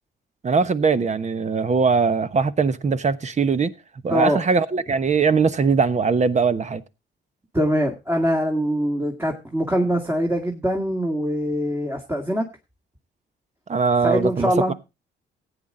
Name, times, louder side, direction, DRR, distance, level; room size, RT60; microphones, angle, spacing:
voice 1, 0.4-3.7 4.0-6.8 13.7-14.7, right 5 dB, 35° right, 1.1 m, -21 dB
voice 2, 7.5-12.5 14.0-14.7, equal, 10° right, 2.0 m, -23 dB
15.0 x 9.0 x 3.8 m
cardioid pair, 90°, 20 cm